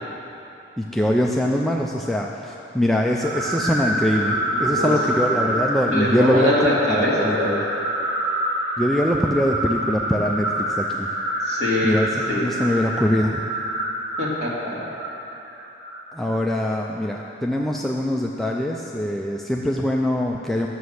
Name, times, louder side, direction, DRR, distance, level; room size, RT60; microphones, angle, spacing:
voice 1, 0.8-7.6 8.8-11.1 11.8-13.4 16.1-20.7, equal, ahead, -1 dB, 0.3 m, -23 dB
sound 1, 3.2-16.6, right 1 dB, 80° right, 1.7 m, -27 dB
voice 2, 4.1-4.9 5.3-5.6 5.9-7.6 11.4-11.9 12.3-12.5 14.2-14.8, left 1 dB, 40° right, -6 dB, 2.1 m, -24 dB
9.4 x 6.9 x 6.4 m, 2.9 s
head